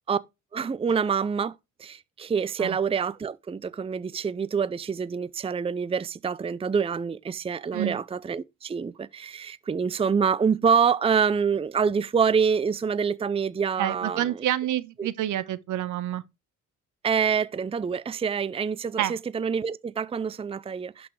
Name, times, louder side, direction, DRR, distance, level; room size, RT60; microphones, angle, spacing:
voice 1, 0.5-1.5 1.8-14.4 15.0-15.1 17.0-21.1, right 6 dB, 20° right, 0.5 m, -26 dB
voice 2, 13.8-16.2 19.0-19.2, right 12 dB, 80° right, 1.1 m, -28 dB
11.5 x 6.1 x 3.3 m
cardioid pair, 90°, 30 cm